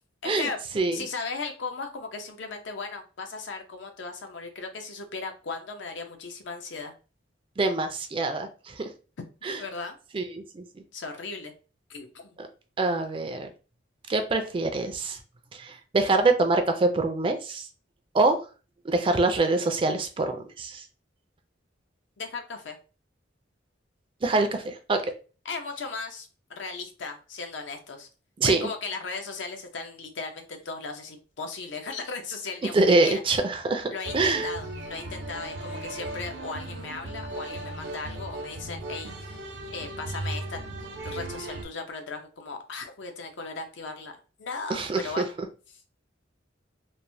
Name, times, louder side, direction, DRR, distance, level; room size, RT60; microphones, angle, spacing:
voice 1, 0.2-0.6 0.9-6.9 9.5-10.0 10.9-11.5 11.9-12.4 22.2-22.8 25.4-28.1 28.4-33.2 33.9-39.5 39.7-40.6 41.0-45.3 45.7-45.8, left 4 dB, 75° left, 5 dB, 0.6 m, -37 dB
voice 2, 7.6-8.9 9.4-9.6 10.1-10.6 12.4-12.5 12.8-13.5 14.1-15.2 15.5-17.7 18.1-18.4 18.8-20.8 24.2-25.0 28.4-28.7 32.7-34.5 44.7-45.2, right 3 dB, 30° right, 7 dB, 0.3 m, -25 dB
sound 1, 34.0-41.6, right 1 dB, 75° right, 0.7 m, -36 dB
3.0 x 2.0 x 2.6 m, 0.35 s
head